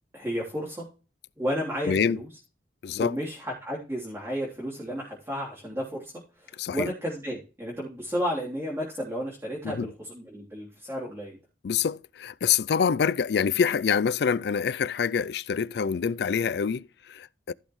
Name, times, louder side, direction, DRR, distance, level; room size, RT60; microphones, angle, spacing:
voice 1, 0.1-0.8 1.4-2.3 3.0-11.4, equal, 15° right, 3.3 m, -32 dB
voice 2, 1.9-2.2 2.8-3.2 6.6-6.9 9.6-9.9 11.6-17.5, left 6 dB, 60° left, 0.4 m, -26 dB
15.0 x 6.2 x 3.2 m
head